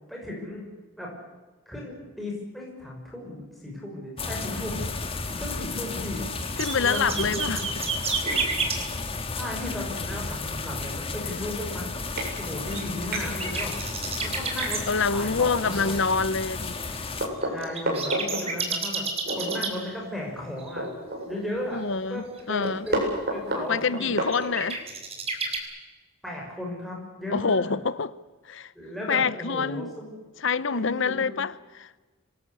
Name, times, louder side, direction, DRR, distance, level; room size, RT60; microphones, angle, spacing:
voice 1, 0.1-0.7 1.0-1.1 1.7-4.9 5.3-6.3 6.8-7.5 9.3-11.9 12.4-14.8 15.1-16.1 17.5-20.8 21.3-21.8 22.1-24.2 26.2-27.7 28.7-30.1 30.7-31.4, left 1 dB, ahead, 6.2 m, -35 dB
sound 1, 4.2-17.3, left 3 dB, 25° left, 1.8 m, -33 dB
sound 2, 5.9-8.8 12.4-14.8 15.1-19.8 20.6-20.7 22.4-22.9 24.0-25.6, right 4 dB, 25° right, 3.8 m, -30 dB
voice 2, 6.6-7.7 8.4-8.5 14.9-16.8 21.7-22.9 23.7-24.8 27.3-28.1 28.4-28.7 29.1-29.9 30.4-31.9, left 5 dB, 55° left, 0.7 m, -26 dB
sound 3, 8.2-8.4 9.9-10.0 10.5-10.6 10.8-11.1 11.7-11.8 12.1-12.3 12.7-13.3 14.6-14.8 15.5-16.3 16.7-16.8 17.2-18.4 19.2-19.6 20.0-20.1 20.4-21.6 21.9-22.0 22.3-24.8, right 1 dB, 45° right, 7.6 m, -31 dB
26.5 x 19.5 x 8.3 m
head